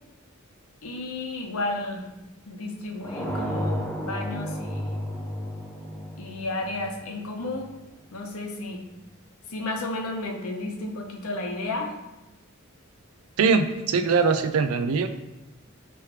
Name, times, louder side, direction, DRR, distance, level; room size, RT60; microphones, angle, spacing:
voice 1, 0.8-2.0 2.5-4.9 6.2-7.7 8.1-8.8 9.5-12.0, left 2 dB, 85° left, 2 dB, 0.7 m, -32 dB
sound 1, 3.0-7.7, equal, 5° left, 0.4 m, -32 dB
voice 2, 13.4-15.1, right 5 dB, 80° right, 8 dB, 0.4 m, -22 dB
4.6 x 3.0 x 3.2 m, 0.98 s
head